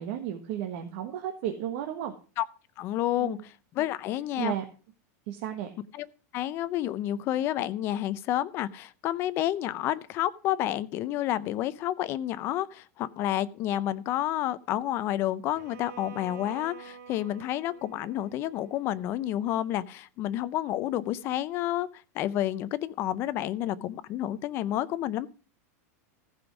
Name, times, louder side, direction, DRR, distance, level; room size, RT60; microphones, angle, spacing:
voice 1, 0.0-2.1 3.2-3.4 4.4-4.6 5.3-5.7, right 10 dB, 50° right, 1.3 m, -33 dB
voice 2, 2.8-4.5 6.0-6.1 6.3-21.9 22.1-25.3, left 13 dB, 30° left, 0.5 m, -30 dB
Bowed string instrument, 15.5-19.6, right 6 dB, 80° right, 2.4 m, -48 dB
15.0 x 5.3 x 6.1 m
supercardioid pair, 170°, 9 cm